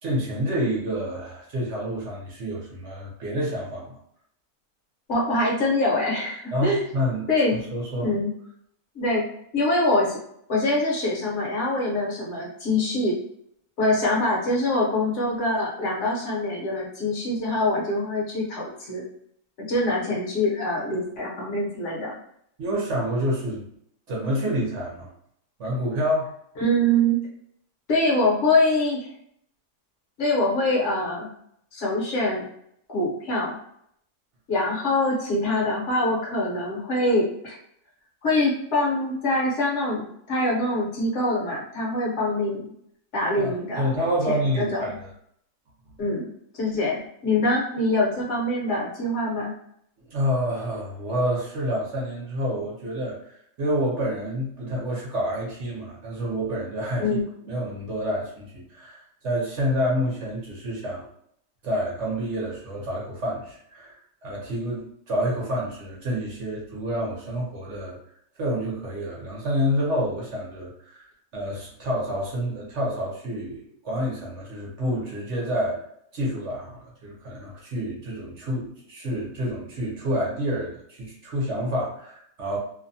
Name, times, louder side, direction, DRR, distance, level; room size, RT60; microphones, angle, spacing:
voice 1, 0.0-4.0 6.5-7.3 7.7-8.1 22.6-23.7 24.1-25.1 25.6-26.3 43.4-45.1 50.1-53.3 53.6-57.1 57.5-61.0 61.6-68.0 68.4-75.8 76.1-82.6, equal, 55° right, -3 dB, 0.9 m, -28 dB
voice 2, 5.1-6.9 7.3-7.6 8.0-8.3 8.9-9.2 9.5-10.2 10.5-13.1 13.8-19.0 19.6-22.2 26.6-27.2 27.9-29.1 30.2-31.3 31.7-32.5 32.9-33.6 34.5-37.6 38.2-42.7 43.1-44.0 44.3-45.0 46.0-46.3 46.5-49.5 57.0-57.2, left 1 dB, 55° left, -3 dB, 1.0 m, -24 dB
2.7 x 2.1 x 2.6 m, 0.69 s
omnidirectional pair, 1.6 m